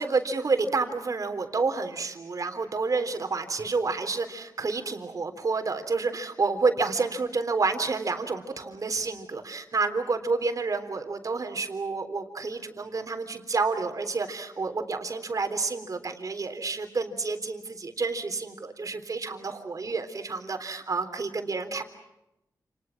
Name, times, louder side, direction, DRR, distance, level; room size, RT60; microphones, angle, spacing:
voice 1, 0.0-21.8, right 4 dB, 50° right, 7 dB, 3.6 m, -29 dB
29.5 x 29.5 x 6.1 m, 0.89 s
wide cardioid pair, 110°, 7 cm